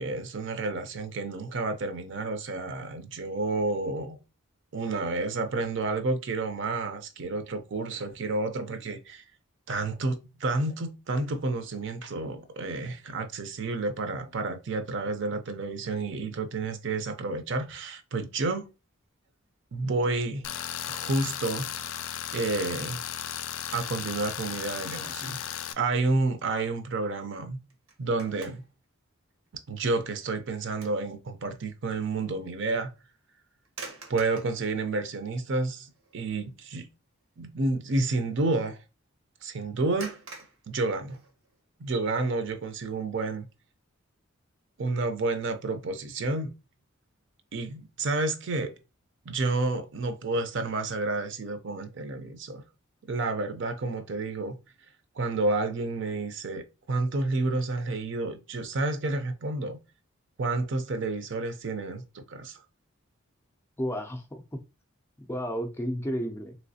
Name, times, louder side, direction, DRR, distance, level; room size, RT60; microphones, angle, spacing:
voice 1, 0.0-4.2 4.7-9.2 9.7-18.7 19.7-20.4 20.9-21.7 22.3-23.0 23.7-25.4 25.8-27.6 28.0-28.6 29.7-32.9 34.1-36.9 37.4-38.8 39.4-40.2 40.7-41.2 41.8-43.5 44.8-46.5 47.5-48.7 49.3-52.6 53.1-54.6 55.1-59.8 60.4-62.6, right 3 dB, 60° right, 0.5 m, -30 dB
Tools, 20.4-25.7, left 9 dB, 80° left, 0.4 m, -35 dB
sound 1, 27.7-28.8 29.3-29.5 30.0-31.1 31.4-31.6 33.7-34.6 35.4-35.5 35.9-36.2 36.5-36.8 40.0-41.6, right 3 dB, 90° right, 0.9 m, -45 dB
voice 2, 63.8-64.6 65.2-66.5, equal, 10° left, 0.4 m, -32 dB
3.1 x 3.1 x 2.7 m
head